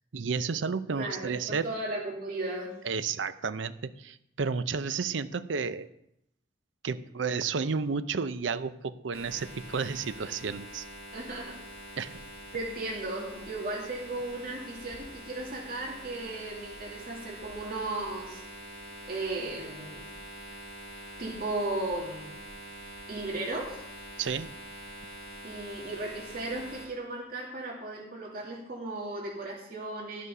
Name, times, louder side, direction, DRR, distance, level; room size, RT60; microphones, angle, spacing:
voice 1, 0.1-1.7 2.8-5.9 6.8-10.9 12.0-12.2 24.2-24.5, right 5 dB, 90° right, 13 dB, 0.6 m, -32 dB
voice 2, 0.9-2.7 11.1-11.6 12.5-18.4 19.1-20.1 21.2-22.3 23.1-23.8 25.4-30.3, right 2 dB, 50° right, -4 dB, 2.6 m, -36 dB
sound 1, 9.1-26.9, right 1 dB, 30° left, 5.2 m, -45 dB
13.0 x 6.4 x 5.5 m, 0.79 s
head